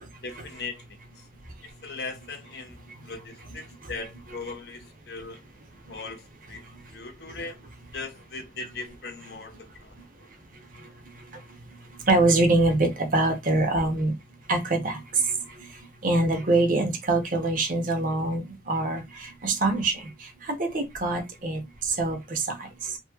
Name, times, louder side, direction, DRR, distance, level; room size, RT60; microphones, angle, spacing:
voice 1, 0.2-0.8 1.2-1.3 1.6-5.4 5.9-6.6 6.9-7.6 7.9-10.3, left 3 dB, 65° left, 0.8 m, -39 dB
voice 2, 12.0-14.2 14.5-23.0, right 2 dB, 50° right, 0.8 m, -25 dB
3.0 x 2.7 x 2.3 m
head